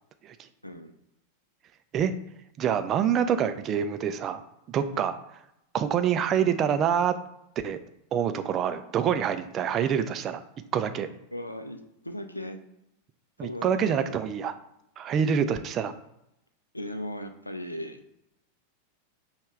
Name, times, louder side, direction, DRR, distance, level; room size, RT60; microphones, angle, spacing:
voice 1, 0.6-1.0 4.9-5.1 11.3-12.6 13.4-14.2 16.7-18.0, left 1 dB, 85° left, 7 dB, 0.4 m, -37 dB
voice 2, 2.6-4.4 4.7-5.2 5.7-7.2 7.6-7.8 8.1-10.4 10.7-11.1 13.4-14.5 15.0-15.9, right 8 dB, 30° right, 10 dB, 0.4 m, -26 dB
5.3 x 2.3 x 3.2 m, 0.82 s
figure-of-eight pair, 90°, 0 cm